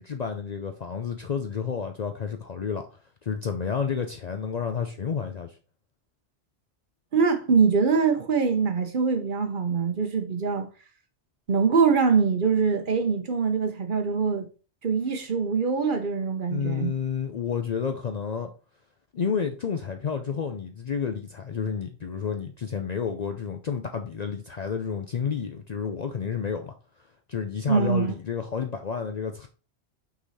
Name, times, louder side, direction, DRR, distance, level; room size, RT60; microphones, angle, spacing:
voice 1, 0.0-2.9 3.2-5.5 16.5-18.5 19.1-26.7 27.3-29.5, left 6 dB, 50° left, 0.5 m, -30 dB
voice 2, 7.1-10.7 11.5-14.5 14.8-16.9 27.7-28.2, right 5 dB, 50° right, 0.9 m, -23 dB
6.0 x 4.0 x 4.1 m
omnidirectional pair, 1.2 m